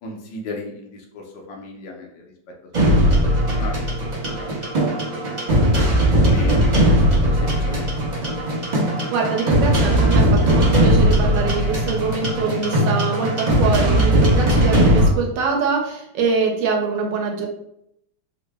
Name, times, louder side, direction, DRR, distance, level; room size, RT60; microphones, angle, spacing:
voice 1, 0.0-2.2 3.0-3.1 3.5-4.0 4.2-4.9 5.2-5.6 6.1-7.9 8.2-8.4, left 2 dB, 80° left, 1 dB, 1.4 m, -36 dB
sound 1, 2.7-15.1, equal, 40° right, 0.6 m, -18 dB
voice 2, 9.1-17.5, right 5 dB, 75° right, 1 dB, 1.3 m, -24 dB
3.6 x 2.1 x 3.3 m, 0.77 s
omnidirectional pair, 2.0 m